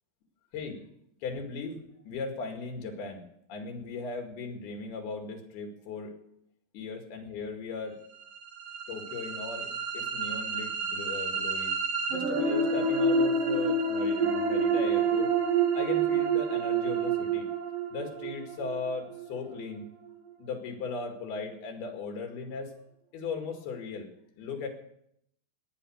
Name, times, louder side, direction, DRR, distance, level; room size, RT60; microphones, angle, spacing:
voice 1, 1.2-6.2 6.7-8.0 8.9-11.7 12.1-15.3 15.7-17.5 17.9-19.9 20.4-22.7 23.1-24.1 24.4-24.7, left 4 dB, 90° left, 4 dB, 4.2 m, -38 dB
sound 1, 8.3-20.3, right 4 dB, 60° right, 3.7 m, -28 dB
18.5 x 9.8 x 6.4 m, 0.73 s
omnidirectional pair, 4.3 m